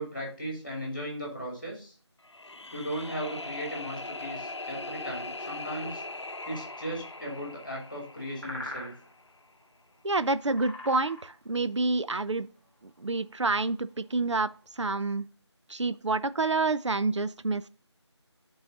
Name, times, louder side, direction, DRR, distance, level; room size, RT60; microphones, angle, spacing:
voice 1, 0.0-1.9 2.7-6.0 6.5-8.9, equal, 20° left, 2.5 m, -37 dB
sound 1, 2.2-9.3, left 2 dB, 70° left, 0.7 m, -40 dB
sound 2, 6.0-14.8, left 1 dB, 30° right, 2.0 m, -47 dB
voice 2, 10.0-12.5 13.0-14.5 14.8-15.3 15.7-17.7, right 3 dB, 80° right, 0.6 m, -28 dB
10.5 x 4.0 x 3.9 m
figure-of-eight pair, 180°, 15 cm